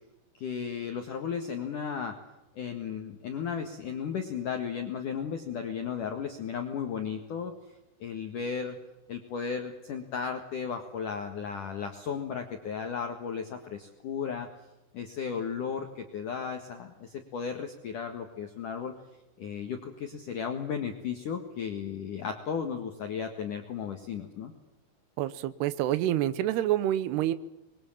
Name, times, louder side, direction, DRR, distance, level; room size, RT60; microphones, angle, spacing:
voice 1, 0.3-2.2 2.6-7.5 8.0-8.8 9.1-14.5 14.9-19.0 19.4-24.5, left 7 dB, 55° left, 4 dB, 2.5 m, -35 dB
voice 2, 25.2-27.3, right 13 dB, 70° right, 14 dB, 2.7 m, -27 dB
26.0 x 22.5 x 7.3 m, 0.94 s
omnidirectional pair, 5.7 m